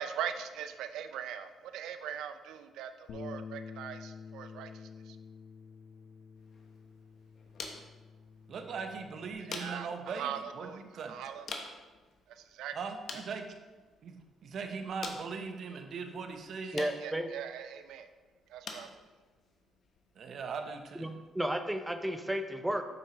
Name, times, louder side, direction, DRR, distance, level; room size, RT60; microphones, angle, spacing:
voice 1, 0.0-5.2 9.4-11.8 12.3-12.7 13.1-13.2 16.7-18.1 18.5-18.9, right 9 dB, 85° right, 9 dB, 0.5 m, -41 dB
Bass guitar, 3.1-9.3, left 6 dB, 80° left, 0.6 m, -48 dB
sound 1, 6.3-21.4, left 4 dB, 60° left, 1.0 m, -49 dB
voice 2, 8.5-11.2 12.7-13.5 14.0-14.2 14.4-16.8 20.2-21.1, right 5 dB, 60° right, 5 dB, 0.8 m, -40 dB
voice 3, 16.7-17.3 20.9-22.8, right 1 dB, 10° right, 7 dB, 0.6 m, -33 dB
7.7 x 6.0 x 3.0 m, 1.3 s
cardioid pair, 90°, 0 cm